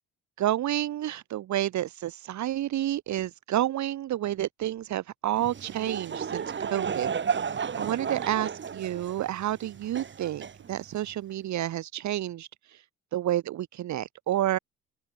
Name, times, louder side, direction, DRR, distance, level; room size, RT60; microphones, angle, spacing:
voice 1, 0.4-7.1 7.5-12.8 13.1-14.6, right 13 dB, 70° right, 1.2 m, -30 dB
Laughter / Crowd, 5.3-11.1, right 6 dB, 40° right, 1.8 m, -33 dB
open air
cardioid pair, 90°, 30 cm